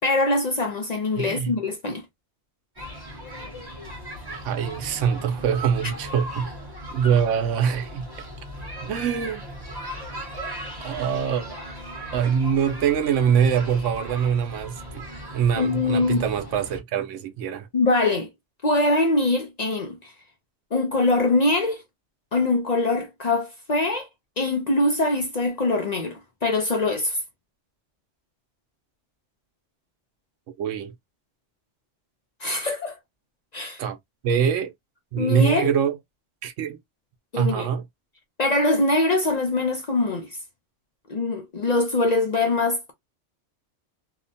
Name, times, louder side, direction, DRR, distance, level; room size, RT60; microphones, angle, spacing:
voice 1, 0.0-2.0 15.6-16.2 17.7-18.3 18.6-20.1 20.7-21.8 22.3-24.1 24.4-27.2 32.4-33.0 33.5-33.8 35.2-35.7 37.3-37.7 38.4-40.4 41.1-42.9, left 2 dB, 50° left, 0.5 m, -23 dB
voice 2, 1.2-1.5 4.3-6.5 6.9-8.1 8.8-9.4 10.8-11.4 12.1-15.0 15.3-17.7 30.6-30.9 33.8-34.0 34.2-34.7 35.1-36.0 36.4-36.8 37.4-37.8, right 7 dB, 85° right, 0.9 m, -24 dB
sound 1, 2.8-16.8, right 1 dB, 20° right, 0.9 m, -37 dB
2.8 x 2.1 x 2.6 m
omnidirectional pair, 1.2 m